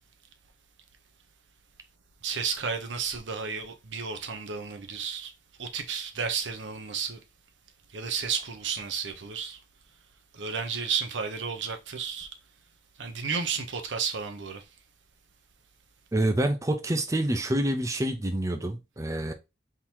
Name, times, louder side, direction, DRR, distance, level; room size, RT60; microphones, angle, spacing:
voice 1, 2.2-5.3 5.6-7.2 7.9-9.6 10.3-12.3 13.0-14.6, right 6 dB, 85° right, 0.8 m, -32 dB
voice 2, 16.1-19.3, right 1 dB, 15° right, 0.5 m, -27 dB
3.8 x 2.8 x 4.4 m
head